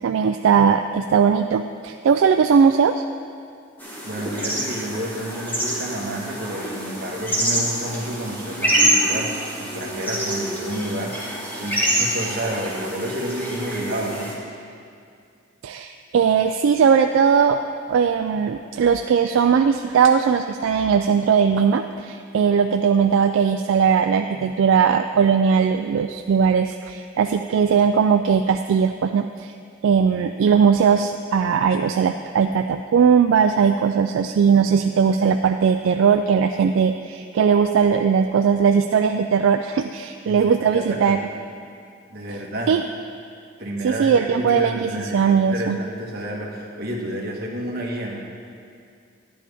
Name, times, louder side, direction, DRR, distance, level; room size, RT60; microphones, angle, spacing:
voice 1, 0.0-3.0 15.6-17.6 17.9-29.5 29.8-41.2 42.7-42.8 43.8-45.8, right 6 dB, 70° right, 7 dB, 0.3 m, -19 dB
sound 1, 3.8-14.3, right 1 dB, 10° left, 1.4 m, -26 dB
voice 2, 4.0-14.3 40.2-41.2 42.1-42.8 43.6-48.2, right 1 dB, 50° right, -2 dB, 1.4 m, -30 dB
10.5 x 10.0 x 3.5 m, 2.3 s
head